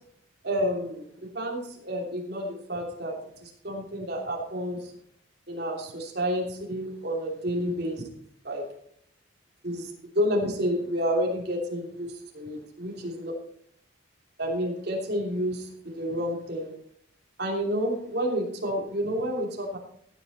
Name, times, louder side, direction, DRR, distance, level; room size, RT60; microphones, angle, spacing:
voice 1, 0.4-1.0 1.3-4.9 5.5-8.1 8.4-8.6 9.6-13.3 14.4-16.7 17.4-19.8, equal, 50° right, 0 dB, 3.1 m, -30 dB
15.0 x 8.7 x 4.2 m, 0.66 s
head